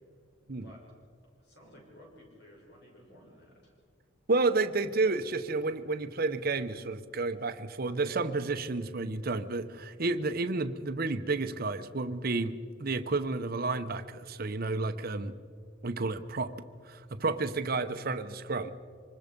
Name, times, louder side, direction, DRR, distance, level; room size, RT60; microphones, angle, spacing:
voice 1, 0.4-0.8 1.4-3.7, equal, 60° left, -2 dB, 6.7 m, -55 dB
voice 2, 4.3-12.5 12.8-15.3 15.8-16.5 16.8-18.7, right 3 dB, 50° right, 9 dB, 0.8 m, -31 dB
25.0 x 20.5 x 5.3 m, 2.1 s
head